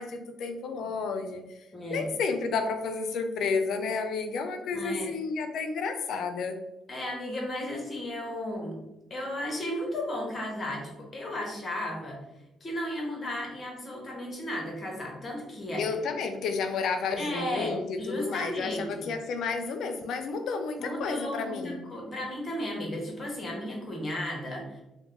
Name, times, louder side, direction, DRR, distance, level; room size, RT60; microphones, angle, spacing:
voice 1, 0.0-1.4 1.9-6.6 15.8-21.8, left 4 dB, 75° left, 7 dB, 0.4 m, -31 dB
voice 2, 1.7-2.1 4.7-5.1 6.9-8.8 9.1-12.2 12.6-16.0 17.2-18.9 20.8-24.8, left 1 dB, 35° left, -1 dB, 1.1 m, -34 dB
2.9 x 2.1 x 3.7 m, 0.94 s
cardioid pair, 90°, 0 cm